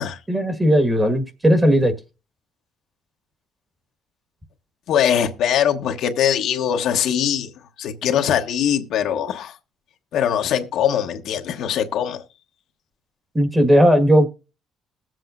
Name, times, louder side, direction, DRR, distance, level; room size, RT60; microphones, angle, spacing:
voice 1, 0.3-1.9 13.3-14.3, equal, 15° right, 1.6 m, -16 dB
voice 2, 4.9-7.5 7.8-9.5 10.1-12.2, left 9 dB, 70° left, 1.2 m, -21 dB
21.0 x 7.7 x 2.6 m
cardioid pair, 130°, 0 cm